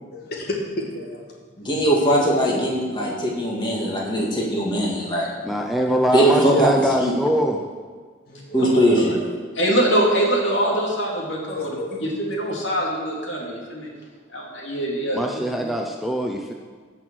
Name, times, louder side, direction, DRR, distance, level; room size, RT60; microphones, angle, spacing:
voice 1, 0.3-1.2 1.7-1.9 5.5-5.6 8.3-8.7 11.5-12.2, left 1 dB, 50° left, -1 dB, 2.2 m, -31 dB
voice 2, 1.6-5.3 6.1-7.2 8.5-9.2, right 1 dB, 25° left, -3 dB, 2.1 m, -20 dB
voice 3, 5.4-7.6 15.1-16.5, equal, ahead, 1 dB, 0.6 m, -23 dB
voice 4, 9.6-11.7 12.2-13.9 14.3-15.7, right 1 dB, 75° left, -2 dB, 2.7 m, -23 dB
15.0 x 6.1 x 6.3 m, 1.5 s
head